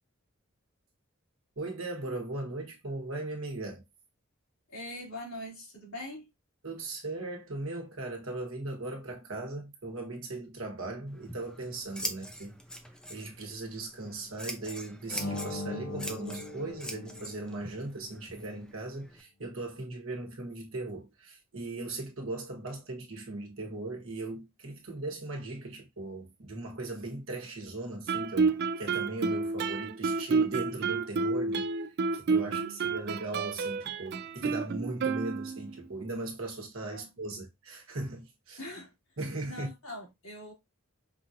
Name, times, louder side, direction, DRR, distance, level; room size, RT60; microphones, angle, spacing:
voice 1, 1.6-3.8 6.6-12.6 13.1-31.6 32.1-38.6 39.2-39.7, right 2 dB, 80° right, 1.2 m, -38 dB
voice 2, 4.7-6.3 32.4-32.9 36.9-37.1 38.6-38.9 39.4-40.5, left 1 dB, 80° left, 2.6 m, -43 dB
Scissors, 11.1-19.2, equal, 5° left, 0.5 m, -43 dB
sound 1, 15.1-17.8, left 2 dB, 55° left, 0.7 m, -39 dB
Guitar, 28.1-35.8, right 4 dB, 50° right, 0.3 m, -30 dB
5.4 x 2.5 x 2.7 m
head